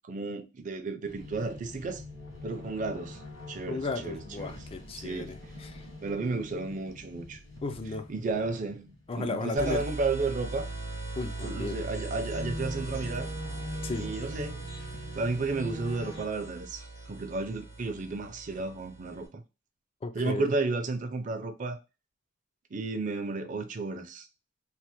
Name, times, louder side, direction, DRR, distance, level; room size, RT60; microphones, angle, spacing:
voice 1, 0.1-2.0 2.4-3.2 3.5-4.6 5.0-5.3 6.0-7.4 8.1-10.7 11.4-13.3 13.9-14.6 15.1-16.8 17.1-19.4 20.1-21.8 22.7-24.3, right 3 dB, 40° right, 0.5 m, -32 dB
sound 1, 1.0-16.2, left 1 dB, 65° left, 1.5 m, -44 dB
voice 2, 3.7-5.9 7.6-8.1 9.1-9.8 11.2-11.8 13.8-14.1 20.0-20.5, left 3 dB, 30° left, 0.3 m, -35 dB
sound 2, 9.6-19.3, right 2 dB, 85° left, 1.7 m, -40 dB
3.1 x 2.1 x 2.9 m
head